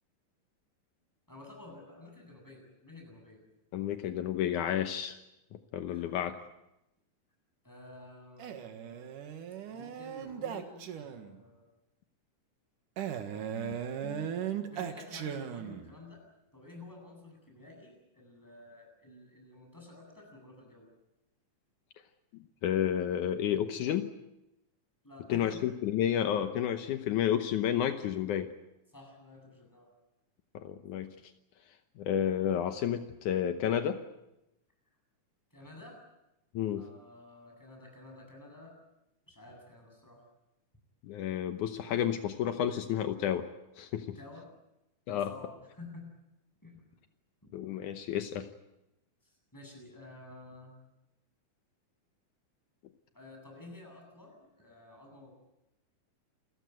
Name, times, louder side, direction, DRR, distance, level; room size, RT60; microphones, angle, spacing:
voice 1, 1.3-3.5 5.9-6.1 7.6-9.0 9.7-11.6 14.7-16.2 16.5-20.9 25.0-25.7 28.9-29.9 35.5-36.0 36.7-38.8 39.3-40.2 44.0-44.5 45.1-46.2 46.6-46.8 47.4-47.5 49.2-50.8 53.1-55.3, left 2 dB, 5° left, 1 dB, 8.0 m, -51 dB
voice 2, 3.7-5.2 5.5-6.5 13.5-14.3 22.6-24.1 25.3-28.5 30.5-31.2 32.0-34.0 36.5-36.8 41.0-43.5 43.8-44.2 45.1-45.3 47.5-48.5, left 10 dB, 75° left, 8 dB, 2.5 m, -31 dB
Male speech man speaking, 8.4-11.4 13.0-15.9, right 9 dB, 85° right, 3.3 m, -38 dB
28.5 x 16.0 x 9.4 m, 0.89 s
omnidirectional pair, 3.6 m